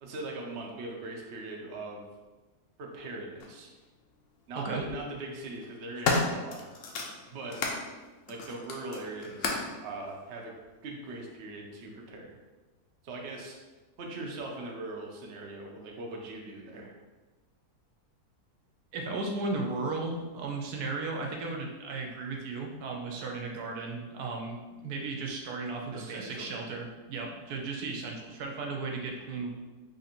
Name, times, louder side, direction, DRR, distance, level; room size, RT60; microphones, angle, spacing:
voice 1, 0.0-2.1 2.8-3.7 4.5-6.8 7.3-7.6 8.3-10.5 10.8-12.3 13.0-13.6 14.0-16.9 25.9-26.5, right 2 dB, 60° right, 0 dB, 0.7 m, -40 dB
sound 1, 3.4-3.5 4.6-5.0 5.5-7.8 8.3-9.8 10.6-10.7, left 3 dB, 65° left, 0.9 m, -32 dB
voice 2, 18.9-29.5, right 3 dB, 75° right, 1 dB, 1.1 m, -35 dB
3.3 x 2.5 x 4.2 m, 1.2 s
omnidirectional pair, 1.7 m